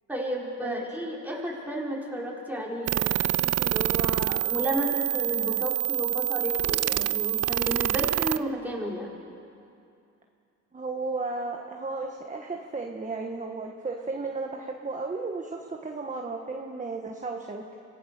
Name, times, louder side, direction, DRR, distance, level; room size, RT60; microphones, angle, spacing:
voice 1, 0.1-9.1, equal, 5° right, -3 dB, 4.8 m, -32 dB
sound 1, 2.9-8.4, right 14 dB, 55° right, 0.5 m, -26 dB
voice 2, 10.7-17.6, right 3 dB, 25° right, 2 dB, 1.5 m, -34 dB
25.5 x 16.5 x 6.8 m, 2.5 s
cardioid pair, 90°, 30 cm